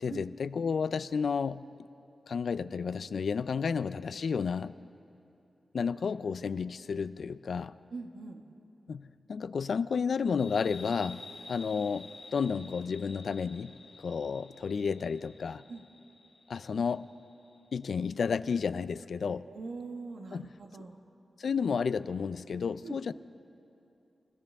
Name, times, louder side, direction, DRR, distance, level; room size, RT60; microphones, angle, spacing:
voice 1, 0.0-1.7 2.3-4.8 5.7-7.7 8.9-13.7 14.0-15.6 16.5-17.1 17.7-19.5 20.3-20.5 21.4-23.1, left 6 dB, 75° left, 15 dB, 0.3 m, -32 dB
voice 2, 7.9-8.4 15.7-15.8 19.5-21.0 22.8-23.0, right 4 dB, 80° right, 2 dB, 1.5 m, -42 dB
sound 1, 10.4-17.6, left 3 dB, 55° left, 1.1 m, -50 dB
28.5 x 14.5 x 3.5 m, 2.9 s
wide cardioid pair, 95°, 0 cm